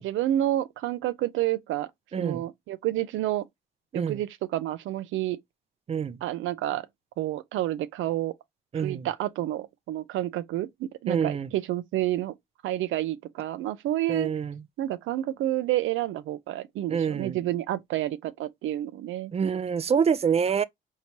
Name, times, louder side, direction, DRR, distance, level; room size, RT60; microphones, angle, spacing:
voice 1, 0.0-1.9 2.2-3.5 3.9-5.4 6.2-6.9 7.2-8.3 8.7-12.3 12.6-14.3 14.8-19.3, right 14 dB, 85° right, 0.5 m, -29 dB
voice 2, 2.1-2.5 3.9-4.2 5.9-6.2 8.7-9.1 11.1-11.5 14.1-14.6 16.9-17.4 19.3-20.6, right 7 dB, 30° right, 0.4 m, -26 dB
4.5 x 2.8 x 2.8 m
cardioid pair, 90°, 20 cm